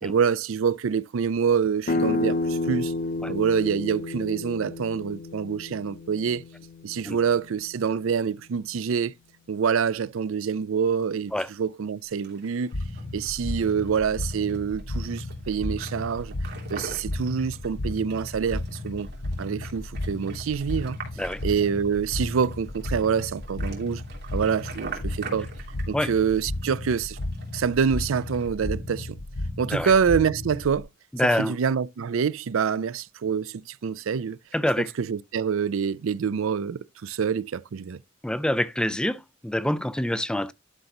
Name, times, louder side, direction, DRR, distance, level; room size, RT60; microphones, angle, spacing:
voice 1, 0.0-2.9 3.3-6.4 6.8-9.1 9.5-11.3 11.6-12.7 13.1-16.3 16.7-19.1 19.4-21.0 21.4-24.0 24.3-25.5 25.9-27.2 27.5-29.2 29.6-30.9 31.4-34.4 35.0-38.0, right 6 dB, 75° right, 0.4 m, -26 dB
sound 1, 1.9-7.4, left 2 dB, 45° left, 0.7 m, -30 dB
sound 2, 12.0-28.5, right 4 dB, 55° right, 2.9 m, -45 dB
sound 3, 12.7-30.8, left 1 dB, 85° left, 0.8 m, -34 dB
voice 2, 31.1-31.6 34.5-34.9 38.2-40.5, left 1 dB, 5° left, 0.3 m, -26 dB
11.5 x 5.2 x 2.9 m
head